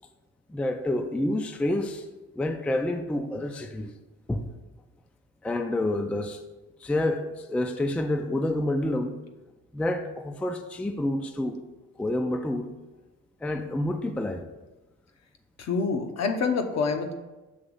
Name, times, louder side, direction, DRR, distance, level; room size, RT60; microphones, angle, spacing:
voice 1, 0.5-2.0 2.4-3.9 4.3-4.5 5.4-6.4 6.8-9.2 9.7-11.6 12.0-12.7 13.4-14.5, left 1 dB, 5° left, 0.3 m, -28 dB
voice 2, 15.6-17.1, left 4 dB, 60° left, 0.8 m, -26 dB
6.5 x 3.0 x 5.3 m
cardioid pair, 90°, 30 cm